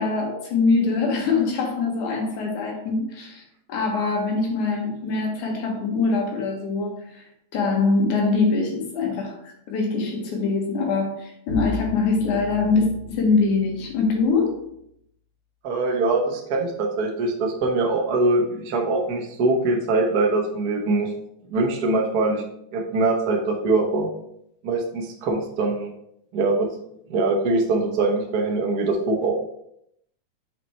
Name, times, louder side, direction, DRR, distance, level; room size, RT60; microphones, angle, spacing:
voice 1, 0.0-3.4 3.7-7.3 7.5-14.6, left 4 dB, 85° left, 0 dB, 2.7 m, -23 dB
Bowed string instrument, 11.5-14.5, left 4 dB, 50° left, 3.2 m, -36 dB
voice 2, 15.6-21.1 21.5-22.4 22.7-24.1 24.6-25.9 26.3-26.7 27.1-29.3, right 3 dB, 80° right, 0 dB, 0.8 m, -23 dB
5.8 x 5.5 x 3.3 m, 0.75 s
omnidirectional pair, 3.4 m